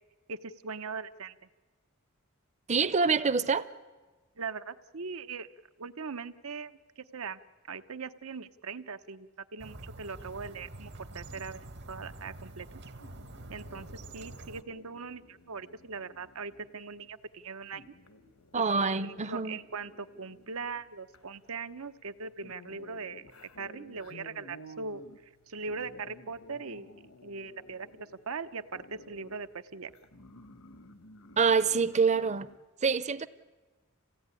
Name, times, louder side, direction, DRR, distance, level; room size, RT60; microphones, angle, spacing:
voice 1, 0.3-1.3 4.4-5.5 5.8-7.4 7.7-12.7 13.5-13.9 14.1-17.9 18.5-25.0 25.5-26.9 27.2-29.9, right 4 dB, 75° right, 1.0 m, -40 dB
voice 2, 2.7-3.7 18.5-19.6 31.4-32.5 32.8-33.3, right 5 dB, 35° right, 0.7 m, -26 dB
sound 1, 9.6-14.6, right 2 dB, 55° right, 1.2 m, -46 dB
sound 2, 13.0-32.6, left 1 dB, 80° left, 1.3 m, -55 dB
27.5 x 17.0 x 9.8 m
head